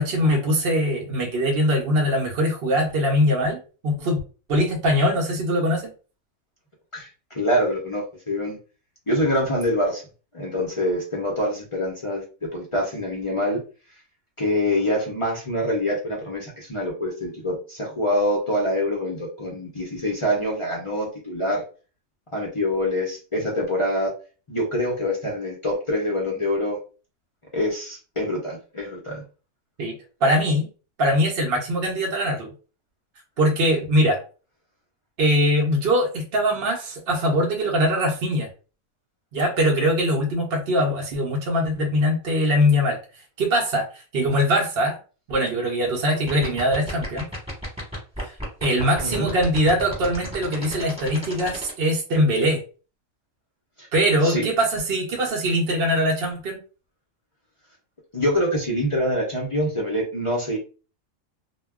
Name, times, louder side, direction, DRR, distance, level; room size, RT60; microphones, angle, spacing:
voice 1, 0.0-4.2 4.5-5.8 29.8-30.0 30.2-30.7 31.0-32.5 33.4-34.2 35.2-38.5 39.3-43.0 43.4-45.0 45.3-47.2 48.2-48.3 48.6-52.6 53.9-56.6, equal, 55° right, -1 dB, 0.7 m, -22 dB
voice 2, 6.9-8.6 9.1-10.0 10.3-13.6 14.4-21.6 22.3-24.1 24.5-26.8 27.5-29.2 49.0-49.3 53.8-53.9 54.2-54.5 58.1-60.6, left 1 dB, 40° left, -2 dB, 0.4 m, -25 dB
sound 1, 46.1-51.7, equal, 5° right, 1.1 m, -33 dB
2.2 x 2.1 x 3.4 m, 0.35 s
omnidirectional pair, 1.4 m